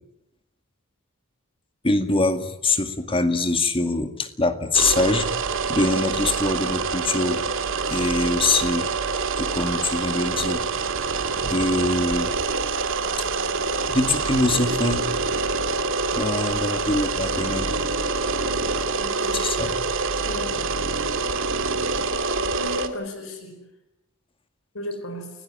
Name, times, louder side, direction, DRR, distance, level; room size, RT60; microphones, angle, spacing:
voice 1, 1.8-5.4 5.7-7.4 7.9-8.9 9.4-10.6 11.4-12.3 13.2-13.3 13.8-15.0 16.1-17.7 19.3-19.8, left 2 dB, 25° left, 8 dB, 2.1 m, -23 dB
sound 1, 4.7-22.9, right 4 dB, 70° right, 2.0 m, -26 dB
voice 2, 19.0-19.5 20.2-20.5 22.5-23.6 24.7-25.3, left 1 dB, 80° left, 7 dB, 5.1 m, -34 dB
29.0 x 18.0 x 9.0 m, 0.88 s
head